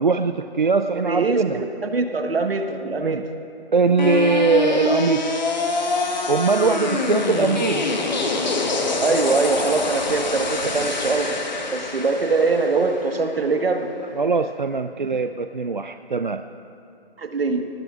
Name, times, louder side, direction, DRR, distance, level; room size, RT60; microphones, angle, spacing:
voice 1, 0.0-1.6 3.0-3.3 3.7-5.3 6.3-7.9 10.8-10.9 14.1-16.4, right 4 dB, 50° right, 8 dB, 0.4 m, -21 dB
voice 2, 1.0-3.2 9.0-11.3 11.7-13.9 17.2-17.7, right 3 dB, 65° right, 5 dB, 1.4 m, -22 dB
sound 1, 4.0-14.0, left 3 dB, 45° left, 1.4 m, -25 dB
24.0 x 19.0 x 2.4 m, 2.9 s
hypercardioid pair, 180°, 31 cm